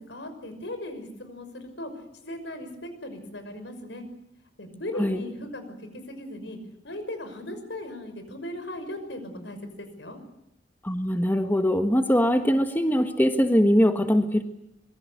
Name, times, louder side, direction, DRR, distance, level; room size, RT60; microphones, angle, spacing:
voice 1, 0.0-1.9 2.2-4.0 4.6-5.6 5.9-6.6 6.8-10.2, left 1 dB, 75° left, 9 dB, 6.0 m, -37 dB
voice 2, 10.8-14.4, equal, 10° left, 6 dB, 1.5 m, -22 dB
26.0 x 23.0 x 8.3 m, 0.80 s
head